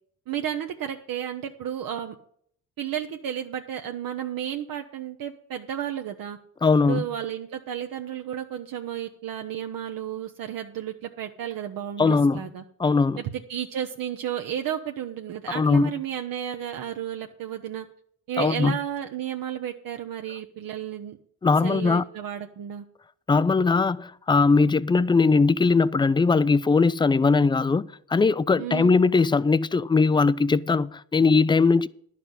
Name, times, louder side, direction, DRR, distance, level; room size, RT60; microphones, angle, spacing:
voice 1, 0.3-2.2 2.8-6.4 6.8-12.6 13.2-17.9 18.3-21.2 21.6-22.8 28.6-29.0, right 10 dB, 65° right, 0.9 m, -32 dB
voice 2, 6.6-7.1 12.0-12.4 12.8-13.2 15.5-15.9 18.4-18.8 21.4-22.0 23.3-31.9, left 4 dB, 15° left, 0.3 m, -20 dB
10.5 x 5.9 x 8.0 m
cardioid pair, 80°, 37 cm